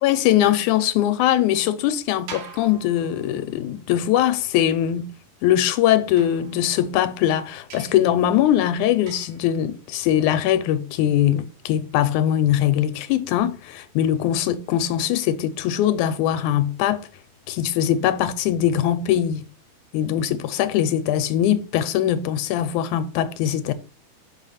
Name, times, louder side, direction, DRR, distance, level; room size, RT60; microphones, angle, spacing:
voice 1, 0.0-5.1 5.4-17.1 17.5-19.4 19.9-23.7, left 11 dB, 85° left, 2.2 m, -21 dB
sound 1, 2.3-3.7 6.2-7.1 7.7-8.2 9.1-9.5, right 6 dB, 85° right, 3.1 m, -43 dB
6.2 x 4.9 x 5.6 m
omnidirectional pair, 3.4 m